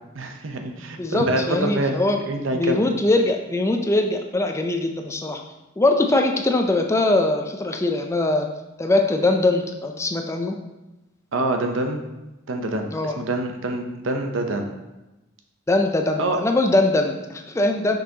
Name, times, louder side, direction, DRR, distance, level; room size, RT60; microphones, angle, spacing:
voice 1, 0.2-1.9 2.3-2.8 11.3-12.0 12.5-14.7 16.2-16.4, right 2 dB, 85° right, 4 dB, 0.7 m, -26 dB
voice 2, 1.0-2.2 2.5-5.4 5.8-8.5 8.8-10.5 12.9-13.2 15.7-18.0, left 2 dB, 15° left, 4 dB, 0.4 m, -21 dB
6.3 x 5.5 x 2.8 m, 1.0 s
head